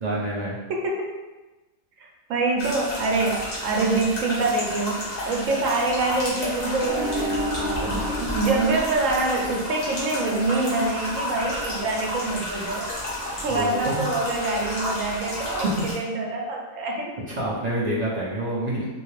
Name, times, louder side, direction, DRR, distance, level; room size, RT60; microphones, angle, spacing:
voice 1, 0.0-0.6 7.8-8.1 13.5-14.0 15.6-15.9 17.3-18.9, right 1 dB, 45° right, -6 dB, 0.5 m, -27 dB
voice 2, 0.7-1.1 2.0-12.9 13.4-17.1, right 3 dB, 70° right, -1 dB, 1.1 m, -25 dB
sound 1, 2.6-16.0, left 1 dB, 35° left, 1.0 m, -31 dB
sound 2, 6.8-9.8, equal, 60° left, 0.7 m, -30 dB
3.2 x 2.8 x 3.1 m, 1.1 s
omnidirectional pair, 1.5 m